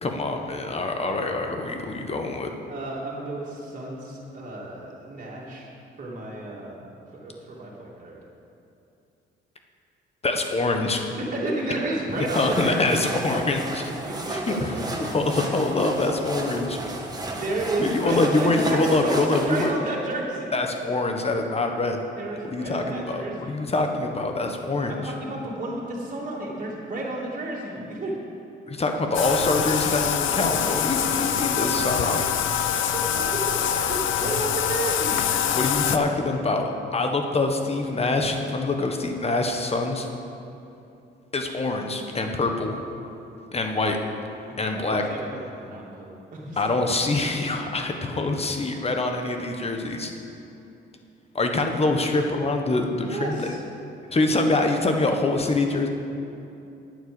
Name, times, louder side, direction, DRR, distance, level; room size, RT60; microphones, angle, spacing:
voice 1, 0.0-2.5 10.2-11.0 12.3-13.9 14.3-16.8 17.8-19.7 20.5-22.0 22.4-25.1 28.7-32.3 35.5-40.1 41.3-42.8 43.5-44.0 44.6-45.0 46.6-50.1 51.3-53.6 54.1-55.9, left 2 dB, 30° left, 4 dB, 1.3 m, -25 dB
voice 2, 2.7-5.7 6.0-6.9 7.1-8.2 11.2-13.0 14.0-15.1 17.3-20.5 22.2-23.6 24.9-28.2 30.2-30.7 31.3-31.8 32.9-35.3 44.5-46.6 53.0-53.6, right 2 dB, 40° right, -5 dB, 2.8 m, -32 dB
sound 1, 12.1-19.7, right 2 dB, 20° right, 1.6 m, -33 dB
Bathtub (filling or washing), 29.1-36.0, left 9 dB, 80° left, 0.7 m, -25 dB
9.6 x 9.1 x 7.1 m, 2.8 s
cardioid pair, 90°, 20 cm